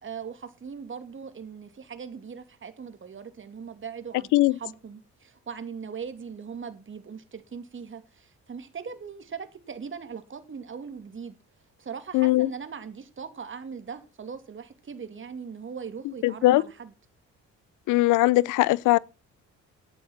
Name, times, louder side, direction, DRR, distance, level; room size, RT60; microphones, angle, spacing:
voice 1, 0.0-11.3 11.8-16.9, right 6 dB, 40° right, 2.5 m, -40 dB
voice 2, 12.1-12.5 16.2-16.6 17.9-19.0, left 18 dB, 85° left, 0.5 m, -20 dB
12.0 x 9.0 x 5.8 m
cardioid pair, 90°, 30 cm